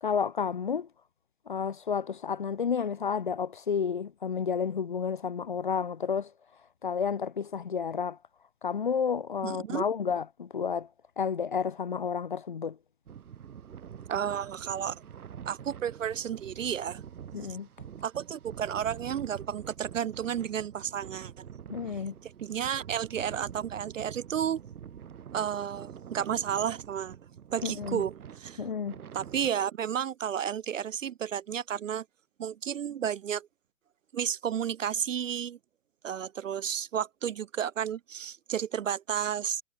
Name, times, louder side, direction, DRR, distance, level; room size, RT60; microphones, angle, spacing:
voice 1, 0.0-0.9 1.5-6.3 6.8-8.2 8.6-10.9 11.2-12.8 17.3-17.7 21.7-22.1 27.6-28.0 28.6-29.0, left 6 dB, 35° left, 0.9 m, -31 dB
voice 2, 9.4-9.8 14.1-15.0 15.5-17.0 18.0-21.5 22.2-24.6 25.3-27.2 27.5-28.6 29.1-32.0 32.4-33.5 34.1-35.6 36.0-39.6, right 9 dB, 60° right, 0.5 m, -32 dB
sound 1, 13.1-29.5, right 8 dB, 75° right, 1.1 m, -46 dB
hypercardioid pair, 175°, 44 cm